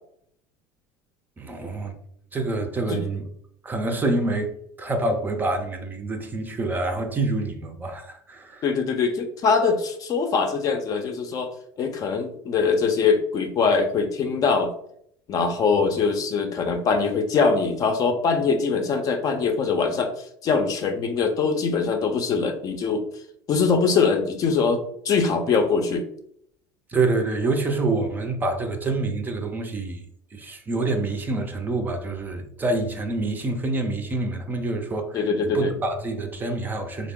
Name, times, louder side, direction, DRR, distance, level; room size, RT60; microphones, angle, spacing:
voice 1, 1.4-1.9 2.3-3.3 3.6-8.6 26.9-30.0 30.3-35.2 35.5-37.1, right 2 dB, 20° right, 0.5 m, -26 dB
voice 2, 8.6-11.5 11.8-14.7 15.3-20.1 20.4-23.1 23.5-26.0 35.1-35.7, left 5 dB, 45° left, 0.6 m, -22 dB
3.6 x 2.0 x 3.6 m
supercardioid pair, 110°, 9 cm